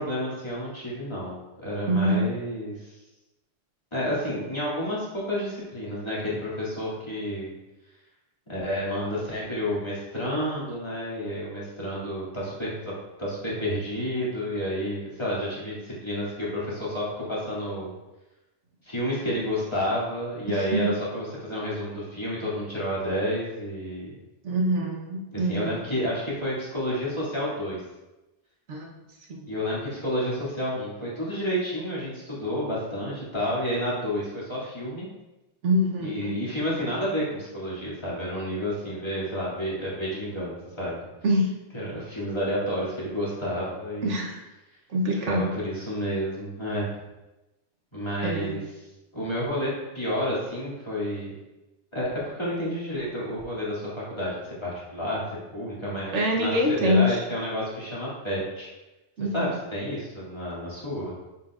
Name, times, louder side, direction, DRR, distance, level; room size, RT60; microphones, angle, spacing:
voice 1, 0.0-3.0 3.9-7.5 8.5-12.9 13.2-17.9 18.8-24.1 25.3-27.8 29.5-35.1 36.0-41.0 41.7-44.2 45.2-46.9 47.9-48.9 49.1-51.3 51.9-58.7 59.3-61.1, equal, 25° left, -8 dB, 2.5 m, -30 dB
voice 2, 1.9-2.3 20.5-20.9 24.4-25.8 28.7-28.9 29.3-29.4 35.6-36.4 41.2-41.5 44.0-44.4 44.9-45.5 48.2-48.5 56.1-57.2 59.2-59.5, equal, 80° right, 0 dB, 1.3 m, -25 dB
9.1 x 5.7 x 2.5 m, 1.0 s
omnidirectional pair, 1.2 m